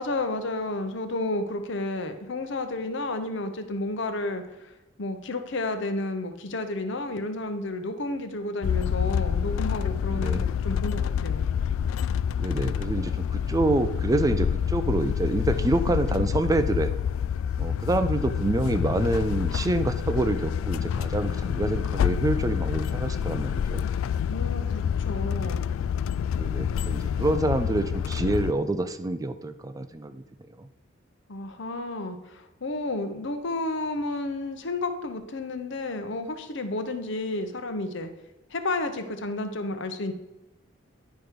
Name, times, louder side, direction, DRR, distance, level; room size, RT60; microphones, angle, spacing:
voice 1, 0.0-11.4 24.2-25.6 31.3-38.1 38.5-40.1, left 2 dB, 65° left, 8 dB, 0.9 m, -31 dB
sound 1, 8.6-28.5, left 8 dB, 85° left, 0.3 m, -27 dB
voice 2, 10.1-10.5 12.4-16.9 17.6-23.8 26.4-30.2 30.6-30.7, right 2 dB, 15° right, 10 dB, 0.4 m, -27 dB
10.5 x 4.6 x 5.0 m, 1.0 s
head